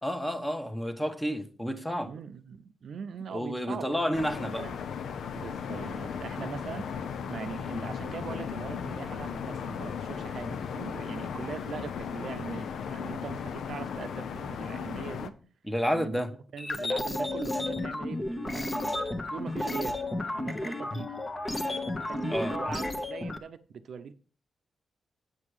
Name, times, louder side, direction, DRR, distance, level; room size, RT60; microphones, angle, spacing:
voice 1, 0.0-2.1 3.3-4.7 15.7-16.3 22.3-22.5, equal, 5° left, 1.2 m, -30 dB
voice 2, 2.0-4.8 5.3-15.3 15.9-16.2 16.5-19.0 19.3-20.0 20.4-21.1 22.1-24.1, right 6 dB, 65° right, 0.7 m, -41 dB
sound 1, 4.1-15.3, left 7 dB, 80° left, 0.7 m, -36 dB
sound 2, 16.6-23.4, left 2 dB, 25° left, 1.1 m, -32 dB
8.0 x 7.4 x 4.8 m
cardioid pair, 105°, 0 cm